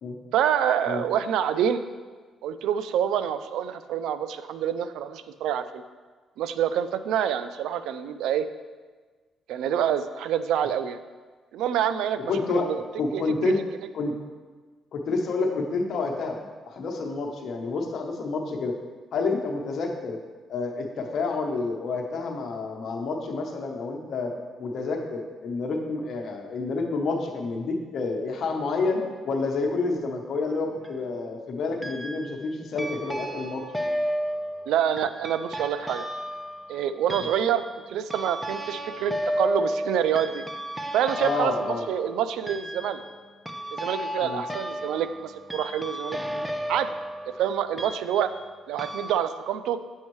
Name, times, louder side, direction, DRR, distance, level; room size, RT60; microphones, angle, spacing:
voice 1, 0.3-1.9 2.4-5.8 6.4-8.5 9.5-11.0 11.5-12.8 13.1-13.5 34.7-36.1 36.7-40.4 40.9-43.0 43.7-46.2 46.7-46.9 47.4-48.3 48.7-49.8, right 9 dB, 85° right, 12 dB, 0.3 m, -27 dB
voice 2, 12.3-12.7 13.0-13.6 13.9-14.2 14.9-16.4 16.7-18.8 19.1-20.2 20.5-33.6 41.2-41.9 44.2-44.4 46.3-46.4, left 3 dB, 65° left, 2 dB, 0.9 m, -29 dB
sound 1, 30.5-31.1 31.8-32.4 32.8-48.5 48.8-49.1, equal, 5° right, 0.4 m, -33 dB
7.2 x 5.3 x 3.1 m, 1.4 s
cardioid pair, 90°, 0 cm